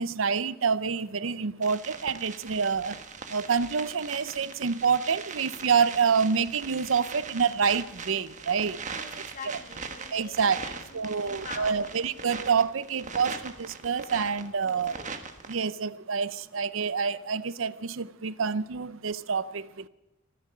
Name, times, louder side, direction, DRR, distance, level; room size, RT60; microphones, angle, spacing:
voice 1, 0.0-3.0 3.3-8.8 10.1-10.6 10.9-14.9 15.5-19.9, right 6 dB, 80° right, 0.6 m, -27 dB
sound 1, 1.6-15.5, right 5 dB, 40° right, 1.3 m, -41 dB
voice 2, 8.9-12.2 12.9-13.3 14.6-15.1, left 4 dB, 40° left, 2.4 m, -46 dB
24.5 x 10.0 x 5.5 m
head